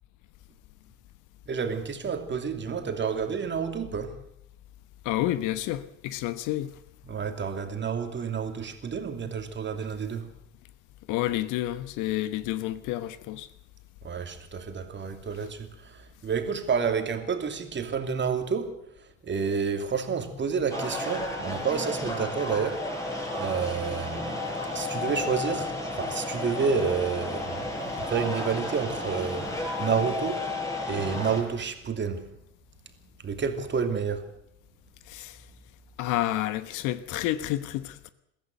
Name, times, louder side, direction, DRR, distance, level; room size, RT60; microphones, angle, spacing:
voice 1, 1.5-4.2 7.0-10.3 14.0-22.8 23.3-30.5 30.9-32.2 33.2-34.3, right 6 dB, 30° right, 2.8 m, -30 dB
voice 2, 5.0-6.7 11.1-13.5 35.1-35.4 36.0-38.1, left 14 dB, 50° left, 1.1 m, -29 dB
sound 1, 20.7-31.4, left 2 dB, 10° left, 5.7 m, -32 dB
22.0 x 15.0 x 8.0 m
figure-of-eight pair, 65°, 38 cm